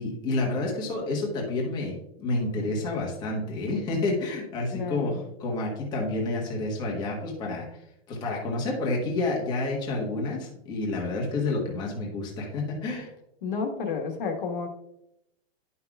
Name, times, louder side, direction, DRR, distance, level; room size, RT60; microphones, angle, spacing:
voice 1, 0.0-5.1 5.4-7.7 8.1-13.1, left 2 dB, 15° left, -2 dB, 1.2 m, -29 dB
voice 2, 4.7-5.2 13.4-14.7, left 5 dB, 55° left, 4 dB, 1.5 m, -31 dB
10.5 x 5.7 x 2.4 m, 0.81 s
supercardioid pair, 175°, 31 cm